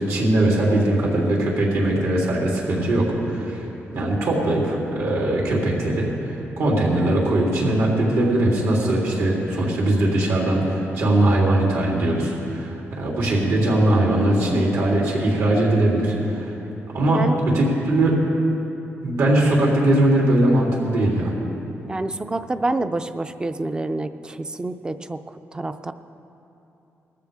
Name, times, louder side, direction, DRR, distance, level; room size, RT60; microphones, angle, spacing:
voice 1, 0.0-3.6 3.9-16.5 16.9-17.2 17.5-18.2 19.0-21.3, right 1 dB, 75° right, -4 dB, 3.4 m, -20 dB
voice 2, 21.9-25.2 25.5-25.9, right 2 dB, 15° right, 10 dB, 0.4 m, -27 dB
19.0 x 14.0 x 3.6 m, 3.0 s
wide cardioid pair, 150°, 5 cm